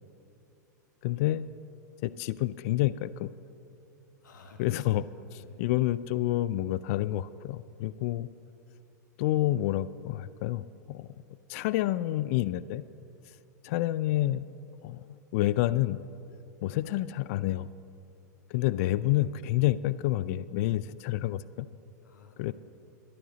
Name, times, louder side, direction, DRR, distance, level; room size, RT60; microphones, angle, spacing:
voice 1, 1.0-1.5 2.0-3.3 4.6-5.0 5.6-8.3 9.2-11.1 11.5-12.8 13.6-14.5 14.8-15.0 15.3-16.1 16.6-17.7 18.5-21.7 22.4-22.5, left 15 dB, 55° left, 18 dB, 0.4 m, -28 dB
voice 2, 4.2-5.0 5.3-5.6 22.0-22.5, left 3 dB, 85° left, 4 dB, 1.7 m, -53 dB
13.0 x 10.5 x 7.0 m, 2.6 s
hypercardioid pair, 115°, 10 cm